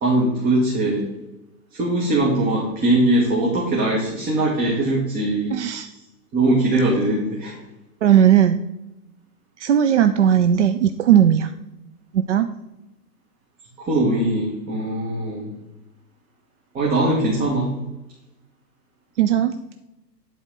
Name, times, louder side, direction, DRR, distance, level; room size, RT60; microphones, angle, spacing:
voice 1, 0.0-1.1 1.7-5.6 6.3-7.5 13.8-15.5 16.7-17.7, right 1 dB, 15° right, -3 dB, 1.6 m, -21 dB
voice 2, 5.5-5.9 8.0-8.6 9.6-11.5 12.1-12.5 19.2-19.6, right 9 dB, 50° right, 8 dB, 0.5 m, -17 dB
10.5 x 4.3 x 5.5 m, 0.96 s
figure-of-eight pair, 120°, 50 cm